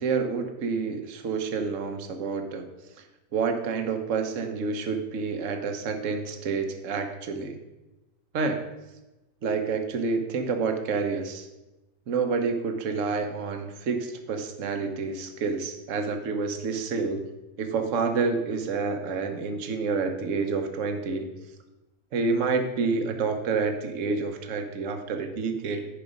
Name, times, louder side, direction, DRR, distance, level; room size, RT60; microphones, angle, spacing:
voice 1, 0.0-2.7 3.3-7.6 8.3-8.6 9.4-11.5 12.1-17.2 17.6-21.3 22.1-25.9, right 4 dB, 60° right, 5 dB, 1.3 m, -28 dB
10.0 x 5.1 x 5.1 m, 1.0 s
omnidirectional pair, 1.6 m